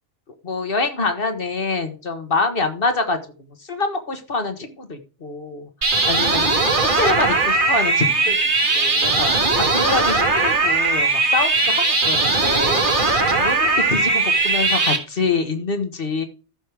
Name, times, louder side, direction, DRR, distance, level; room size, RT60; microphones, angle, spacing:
voice 1, 0.4-12.2 12.4-12.8 13.4-16.3, left 3 dB, 50° left, 7 dB, 1.7 m, -26 dB
sound 1, 5.8-15.0, right 3 dB, 45° right, 1.8 m, -19 dB
14.5 x 6.5 x 3.4 m, 0.35 s
omnidirectional pair, 1.2 m